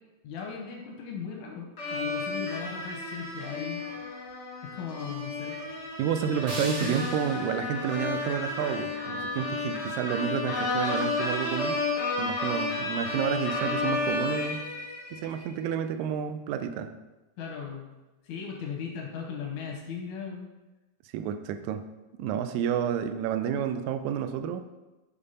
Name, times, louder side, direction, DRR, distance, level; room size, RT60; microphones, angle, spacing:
voice 1, 0.2-3.8 4.6-5.6 6.8-7.1 17.4-17.9 18.2-20.5, left 6 dB, 90° left, 0 dB, 2.3 m, -38 dB
sound 1, 1.8-15.5, left 3 dB, 50° left, 0.9 m, -32 dB
voice 2, 6.0-11.8 12.2-14.6 15.1-17.0 21.1-21.8 22.2-24.6, right 8 dB, 85° right, 9 dB, 1.9 m, -30 dB
sound 2, 6.5-9.4, right 2 dB, 45° right, 1.4 m, -42 dB
6.9 x 3.4 x 5.4 m, 1.1 s
omnidirectional pair, 3.3 m